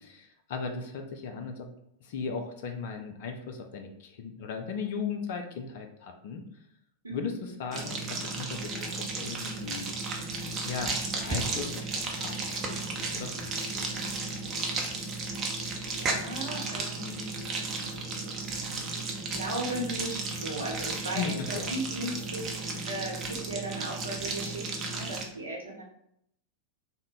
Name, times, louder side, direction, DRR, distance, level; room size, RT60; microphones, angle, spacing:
voice 1, 0.0-1.7 2.0-6.4 7.1-10.1 10.6-13.9 21.1-21.7, left 5 dB, 50° left, 5 dB, 0.4 m, -37 dB
sound 1, 7.7-25.2, right 3 dB, 30° right, 0.6 m, -34 dB
voice 2, 15.9-17.7 19.0-22.4 22.9-25.8, right 1 dB, 75° right, -2 dB, 1.0 m, -37 dB
3.5 x 2.1 x 3.9 m, 0.74 s
figure-of-eight pair, 90°, 0 cm